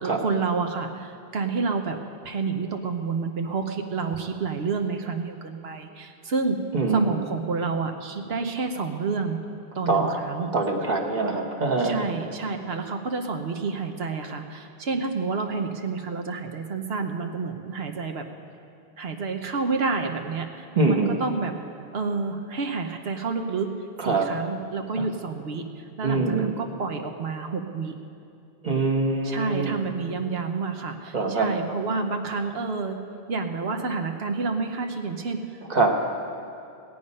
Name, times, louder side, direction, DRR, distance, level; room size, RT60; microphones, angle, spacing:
voice 1, 0.0-2.0 2.2-6.6 6.9-9.4 9.7-10.5 11.8-18.2 19.0-21.5 21.9-23.7 24.0-25.6 26.0-27.9 29.2-33.0 33.3-35.4, right 4 dB, 75° right, 4 dB, 1.1 m, -29 dB
voice 2, 6.7-7.3 9.9-10.2 10.5-12.1 20.8-21.2 24.0-24.3 26.0-26.5 28.6-29.8 31.1-31.5 35.7-35.9, right 3 dB, 45° right, 0 dB, 1.2 m, -24 dB
17.5 x 8.7 x 5.4 m, 2.7 s
omnidirectional pair, 1.0 m